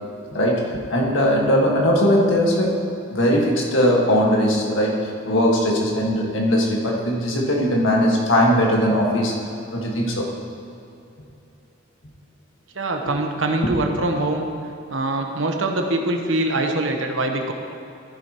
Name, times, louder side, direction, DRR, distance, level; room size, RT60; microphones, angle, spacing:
voice 1, 0.3-2.8 3.1-9.3 9.7-10.3 13.0-13.1 13.6-13.8, equal, 85° left, -2 dB, 1.8 m, -19 dB
voice 2, 12.8-14.5 14.9-17.5, right 2 dB, 85° right, 3 dB, 1.1 m, -23 dB
13.0 x 10.5 x 3.0 m, 2.8 s
head